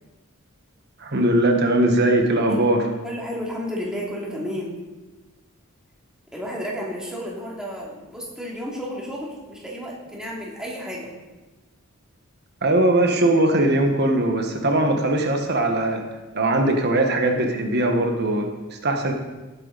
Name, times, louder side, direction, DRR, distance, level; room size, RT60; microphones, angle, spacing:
voice 1, 1.0-2.9 12.6-16.0 16.3-19.1, right 1 dB, 50° right, 3 dB, 1.6 m, -20 dB
voice 2, 3.0-4.7 6.3-11.1, equal, 5° right, -5 dB, 2.9 m, -32 dB
18.0 x 8.9 x 4.2 m, 1.2 s
head